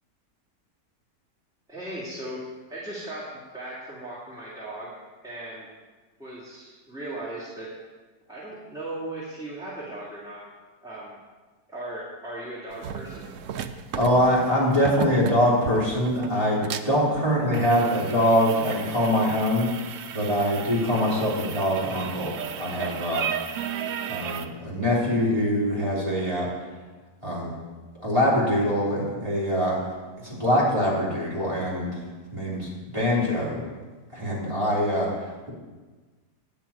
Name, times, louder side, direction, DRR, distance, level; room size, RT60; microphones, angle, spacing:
voice 1, 1.7-2.4 2.7-4.9 5.2-5.7 6.2-7.7 8.3-10.4 10.8-11.2 11.7-13.2, right 1 dB, ahead, -8 dB, 2.4 m, -37 dB
sound 1, 12.7-24.5, right 8 dB, 65° right, 0.8 m, -35 dB
voice 2, 13.9-19.7 20.1-23.3 24.1-26.5 27.2-27.5 28.0-29.8 30.2-32.1 32.3-33.6 34.1-35.5, equal, 20° right, -7 dB, 3.1 m, -24 dB
9.6 x 6.4 x 8.6 m, 1.3 s
omnidirectional pair, 1.8 m